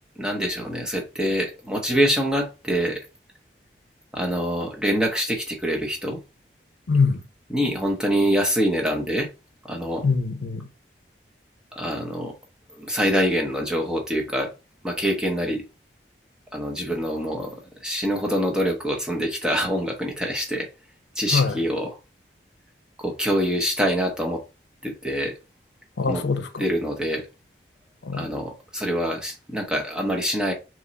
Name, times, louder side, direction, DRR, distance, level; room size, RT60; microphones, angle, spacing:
voice 1, 0.2-3.0 4.1-6.2 7.5-9.3 9.6-10.1 11.7-12.3 12.7-14.5 14.8-15.6 16.5-20.7 21.2-22.0 23.0-24.4 24.8-25.3 26.1-26.2 26.6-27.3 28.1-30.5, equal, 5° right, 0.8 m, -25 dB
voice 2, 6.9-7.2 10.0-10.7 21.3-21.6 26.0-26.6 28.0-28.3, left 4 dB, 85° left, 0.6 m, -23 dB
3.5 x 3.1 x 4.0 m
head